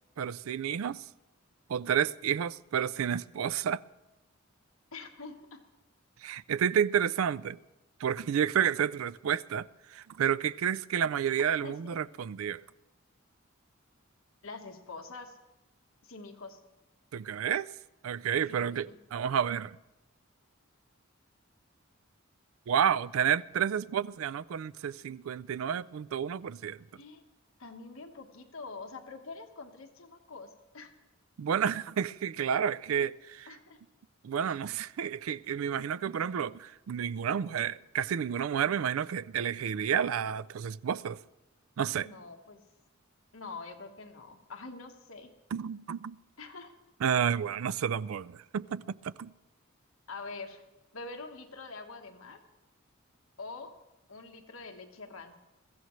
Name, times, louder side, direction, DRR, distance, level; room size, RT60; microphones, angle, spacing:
voice 1, 0.2-1.0 1.7-3.8 6.2-7.6 8.0-12.6 17.1-17.7 18.0-19.8 22.7-26.8 31.4-33.5 34.2-41.2 41.8-42.1 45.5-46.2 47.0-49.3, right 8 dB, 85° right, 0.4 m, -30 dB
voice 2, 4.9-5.6 11.6-11.8 14.4-15.4 16.0-16.6 18.4-19.0 26.9-27.2 27.6-30.5 30.7-30.9 33.5-33.8 42.0-42.6 43.3-45.3 46.4-46.7 50.1-50.6 50.9-52.4 53.4-53.8 54.1-55.4, left 3 dB, 80° left, 1.4 m, -45 dB
22.5 x 14.5 x 3.2 m
head